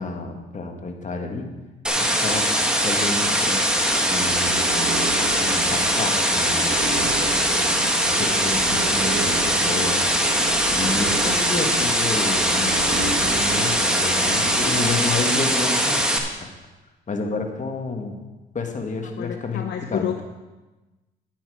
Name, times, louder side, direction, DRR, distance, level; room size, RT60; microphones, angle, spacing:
voice 1, 0.0-1.5 2.0-2.5 2.8-3.8 4.1-4.6 5.4-7.4 8.0-10.1 10.7-16.5 17.1-18.2 18.5-19.6 19.9-20.1, left 3 dB, 40° left, 4 dB, 1.6 m, -30 dB
sound 1, 1.8-16.2, equal, 5° right, 1.4 m, -21 dB
sound 2, 3.8-14.7, right 5 dB, 75° right, 0.9 m, -33 dB
voice 2, 19.2-20.2, left 9 dB, 60° left, 6 dB, 0.7 m, -29 dB
9.9 x 9.2 x 4.9 m, 1.1 s
cardioid pair, 90°, 20 cm